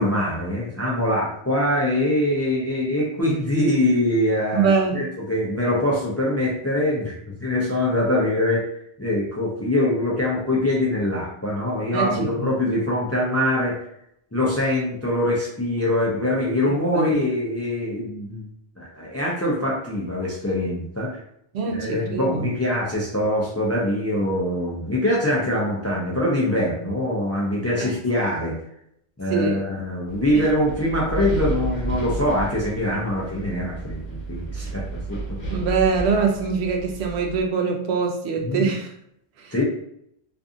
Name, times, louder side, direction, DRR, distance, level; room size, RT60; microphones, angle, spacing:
voice 1, 0.0-8.6 9.0-13.7 14.3-18.5 18.8-21.1 21.7-28.6 29.2-35.4 38.4-38.7 39.5-39.6, left 1 dB, 25° left, -4 dB, 0.3 m, -23 dB
voice 2, 4.5-5.0 11.9-12.5 16.7-17.1 21.5-22.5 27.8-27.9 29.3-29.6 30.3-30.5 35.5-38.9 39.4-39.5, right 5 dB, 85° right, 3 dB, 0.8 m, -24 dB
Wind, 30.1-37.4, right 3 dB, 55° left, 1.1 m, -32 dB
2.5 x 2.5 x 2.4 m, 0.73 s
omnidirectional pair, 1.1 m